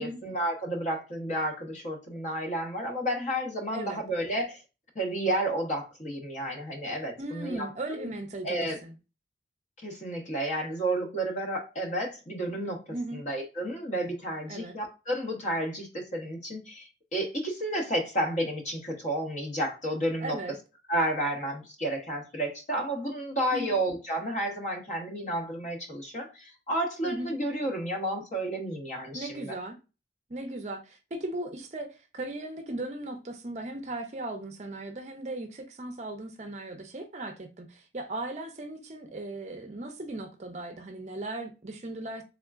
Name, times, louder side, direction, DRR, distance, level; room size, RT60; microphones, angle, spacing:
voice 1, 0.0-4.6 4.9-8.1 8.4-8.8 9.8-12.8 13.1-20.4 20.9-29.6, right 1 dB, 40° left, 0.9 m, -31 dB
voice 2, 7.2-8.9 12.9-13.2 14.5-14.8 20.2-20.6 23.5-23.8 27.0-27.3 29.1-29.8 30.3-42.2, right 2 dB, 40° right, 0.5 m, -37 dB
3.6 x 3.6 x 2.4 m
head